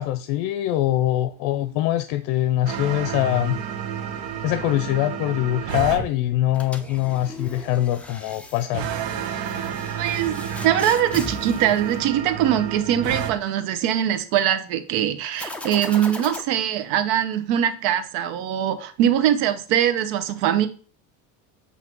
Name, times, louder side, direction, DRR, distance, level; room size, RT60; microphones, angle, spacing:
voice 1, 0.0-3.6 4.4-8.9, left 14 dB, 75° left, 0.7 m, -23 dB
sound 1, 2.7-6.1 8.7-13.3, right 8 dB, 55° right, 1.1 m, -30 dB
sound 2, 6.5-12.7 15.3-16.4, left 1 dB, 5° left, 0.8 m, -38 dB
voice 2, 10.0-20.7, right 10 dB, 75° right, 1.0 m, -22 dB
8.2 x 2.9 x 6.0 m
cardioid pair, 130°, 43 cm